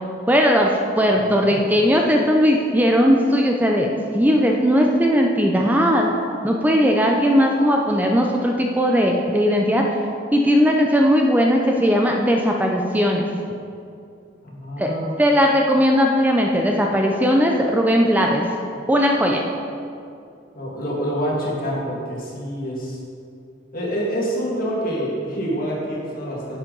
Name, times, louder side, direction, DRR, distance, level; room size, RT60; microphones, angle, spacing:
voice 1, 0.3-0.7 1.0-3.9 4.1-6.1 6.4-9.8 10.3-13.3 14.8-14.9 15.2-18.5 18.9-19.4, equal, 10° right, 1 dB, 0.5 m, -18 dB
voice 2, 1.1-1.6 14.4-15.1 20.6-23.0 23.7-26.6, equal, 50° left, -3 dB, 2.0 m, -27 dB
10.0 x 7.3 x 3.9 m, 2.4 s
head